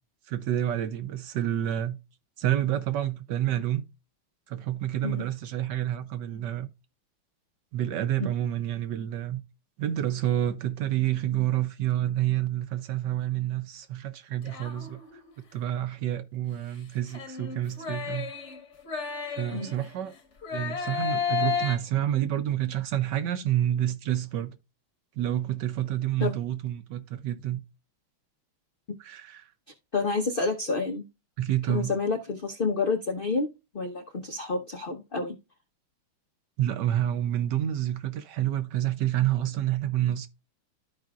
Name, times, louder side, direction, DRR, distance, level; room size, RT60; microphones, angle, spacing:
voice 1, 0.3-2.0 2.4-3.8 4.5-6.7 7.7-9.4 9.8-15.0 15.5-18.3 19.4-20.1 20.5-24.6 25.2-27.6 29.0-29.5 31.4-31.9 36.6-40.3, right 12 dB, 70° right, 1.2 m, -28 dB
sound 1, 14.4-15.3 17.1-20.0 20.4-21.8, left 6 dB, 40° left, 1.4 m, -32 dB
voice 2, 29.9-31.0 31.7-33.5 33.7-35.4, left 3 dB, 85° left, 0.4 m, -29 dB
13.0 x 4.9 x 2.3 m
omnidirectional pair, 2.2 m